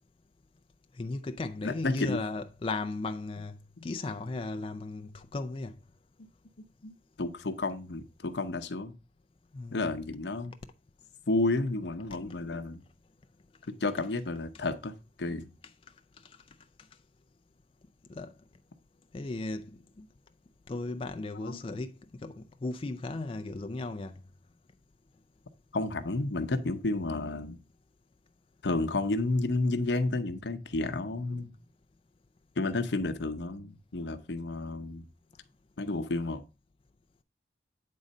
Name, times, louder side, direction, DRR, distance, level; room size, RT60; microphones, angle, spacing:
voice 1, 0.9-5.7 9.5-9.9 16.2-16.4 18.1-18.3 19.1-19.7 20.0-20.1 20.7-24.1, left 2 dB, 30° left, 0.4 m, -36 dB
voice 2, 1.6-2.2 3.8-3.9 6.8-8.9 9.7-10.5 11.3-12.8 13.8-15.5 21.4-21.6 25.7-27.6 28.6-31.5 32.6-35.0 35.8-36.4, left 2 dB, 75° left, 0.8 m, -31 dB
8.5 x 3.8 x 5.3 m
head